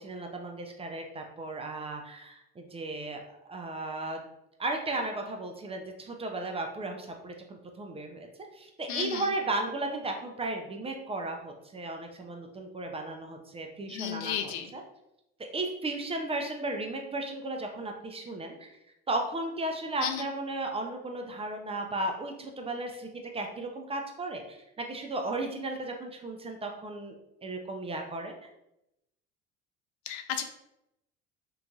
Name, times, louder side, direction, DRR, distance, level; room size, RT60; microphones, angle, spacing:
voice 1, 0.0-3.2 3.5-4.2 4.6-8.3 8.6-14.8 15.5-18.7 19.1-23.1 23.3-27.1 27.4-28.3, right 2 dB, 20° right, 3 dB, 0.4 m, -35 dB
voice 2, 8.9-9.3 13.9-14.7 20.0-20.2 30.1-30.4, left 9 dB, 75° left, 8 dB, 0.4 m, -33 dB
3.1 x 2.5 x 2.2 m, 0.85 s
supercardioid pair, 95°, 30 cm